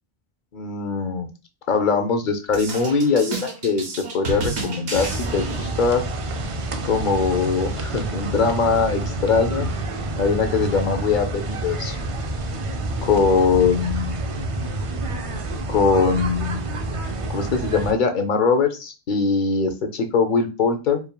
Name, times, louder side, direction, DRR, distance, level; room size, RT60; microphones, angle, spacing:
voice 1, 0.5-1.3 1.7-3.8 4.1-6.0 6.9-9.7 10.2-12.0 13.0-14.2 15.7-16.6 17.3-21.0, left 5 dB, 55° left, 7 dB, 0.6 m, -21 dB
sound 1, 2.5-5.9, right 3 dB, 75° right, 1.2 m, -31 dB
sound 2, 4.9-17.9, right 2 dB, 60° right, 0.3 m, -28 dB
4.6 x 3.4 x 2.3 m, 0.30 s
omnidirectional pair, 1.1 m